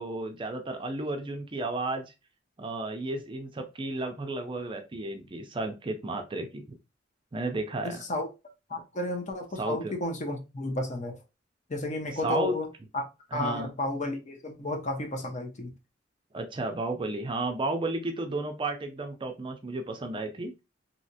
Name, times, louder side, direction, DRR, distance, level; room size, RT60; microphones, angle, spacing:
voice 1, 0.0-2.1 2.6-6.7 7.3-8.0 9.6-10.0 12.1-12.5 13.3-13.7 16.3-20.6, right 2 dB, 25° right, 0.5 m, -33 dB
voice 2, 7.8-8.3 8.7-11.2 11.7-12.7 12.9-13.0 13.3-15.7, left 2 dB, 40° left, 0.7 m, -32 dB
3.2 x 2.8 x 2.7 m
head